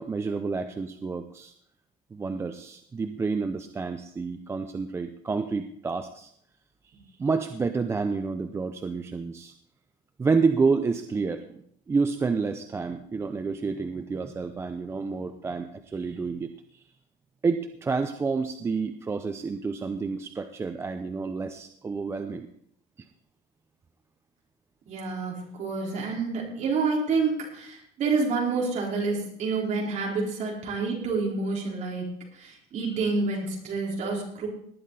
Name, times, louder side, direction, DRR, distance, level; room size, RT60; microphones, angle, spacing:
voice 1, 0.0-1.5 2.1-6.3 7.2-9.5 10.2-16.8 17.4-22.5 23.0-23.1, right 4 dB, 15° right, 7 dB, 0.5 m, -29 dB
voice 2, 24.9-32.1 32.3-34.5, right 4 dB, 40° right, -2 dB, 4.5 m, -28 dB
18.5 x 10.5 x 4.1 m, 0.69 s
cardioid pair, 170°, 18 cm